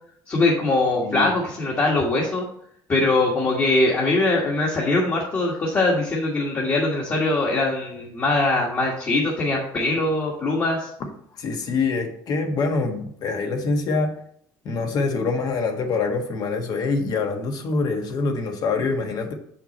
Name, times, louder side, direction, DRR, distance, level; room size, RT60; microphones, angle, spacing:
voice 1, 0.3-2.4 2.9-10.9, left 2 dB, 30° left, -3 dB, 1.6 m, -22 dB
voice 2, 1.0-1.3 11.4-14.1 14.6-19.3, left 4 dB, 50° left, 4 dB, 1.4 m, -25 dB
7.1 x 5.8 x 4.2 m, 0.67 s
cardioid pair, 130°, 8 cm